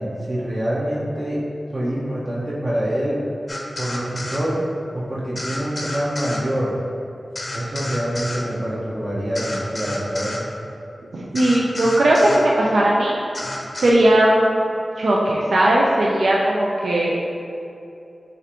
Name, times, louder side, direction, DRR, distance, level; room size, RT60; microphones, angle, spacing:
voice 1, 0.0-1.4 1.7-3.2 3.8-4.6 4.9-6.8 7.5-10.4, right 1 dB, 40° right, -7 dB, 0.7 m, -25 dB
sound 1, 3.5-4.4 5.3-6.4 7.3-8.4 9.3-10.4 11.3-12.4 13.3-13.9, left 1 dB, 35° left, 0.5 m, -30 dB
voice 2, 11.1-13.2 13.8-14.6 15.0-17.1, right 1 dB, 90° right, -4 dB, 0.4 m, -17 dB
6.4 x 2.5 x 2.9 m, 2.6 s
wide cardioid pair, 70°, 0 cm